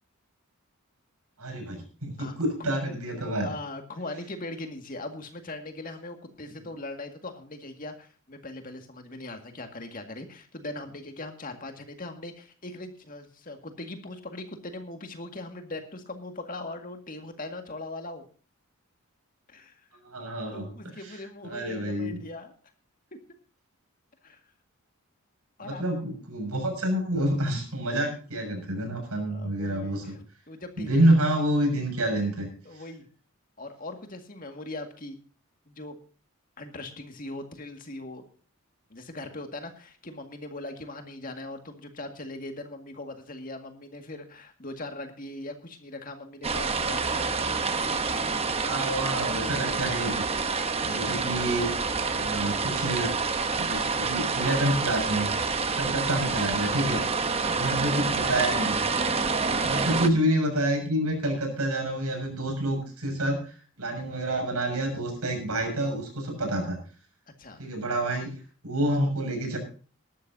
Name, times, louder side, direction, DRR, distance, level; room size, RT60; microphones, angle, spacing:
voice 1, 1.4-3.5 20.0-20.6 21.4-22.2 25.6-30.2 30.8-32.5 48.6-50.3 50.8-51.7 52.2-53.1 53.6-55.3 55.8-57.0 57.4-58.8 59.6-66.8 67.6-68.3 68.6-69.6, right 1 dB, 90° right, 3 dB, 6.8 m, -28 dB
voice 2, 3.4-18.3 19.5-19.9 20.5-22.5 24.2-24.4 25.6-25.8 29.3-30.2 30.5-31.2 32.7-33.1 33.6-35.2 35.7-36.0 36.6-38.2 38.9-47.6 57.4-57.6 59.6-60.0 67.4-67.6, left 2 dB, 40° left, 5 dB, 2.0 m, -40 dB
sound 1, 46.4-60.1, right 4 dB, 25° right, 0.9 m, -28 dB
18.5 x 12.5 x 2.7 m, 0.38 s
head